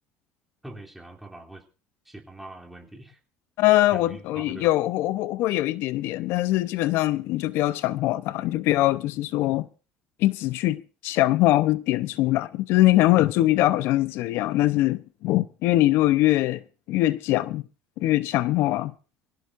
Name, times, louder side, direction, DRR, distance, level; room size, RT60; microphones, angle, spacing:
voice 1, 0.6-1.6 2.0-3.2 3.9-4.7, right 2 dB, 5° right, 3.2 m, -43 dB
voice 2, 3.6-9.7 10.2-16.6 16.9-17.6 18.0-18.9, left 16 dB, 70° left, 0.8 m, -22 dB
23.0 x 16.5 x 2.6 m
cardioid pair, 120°, 4 cm